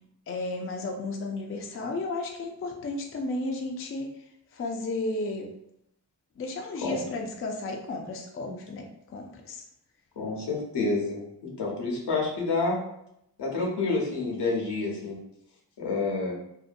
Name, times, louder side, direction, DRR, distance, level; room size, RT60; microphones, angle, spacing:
voice 1, 0.3-4.2 4.5-5.5 6.4-9.6, left 2 dB, 35° left, 2 dB, 0.4 m, -33 dB
voice 2, 10.2-12.8 13.4-15.2 15.8-16.3, left 3 dB, 80° left, -2 dB, 0.8 m, -28 dB
2.7 x 2.1 x 2.5 m, 0.78 s
cardioid pair, 65°, 40 cm